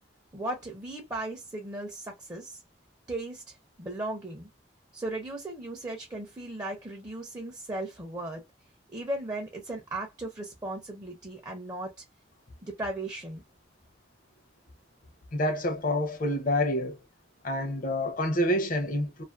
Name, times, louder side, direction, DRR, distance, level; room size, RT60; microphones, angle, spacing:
voice 1, 0.3-2.6 3.1-4.5 4.9-8.4 8.9-11.9 12.6-13.4, right 1 dB, 20° right, 0.5 m, -36 dB
voice 2, 15.3-17.0 17.4-19.2, left 1 dB, 50° left, 0.6 m, -27 dB
2.5 x 2.4 x 2.3 m
head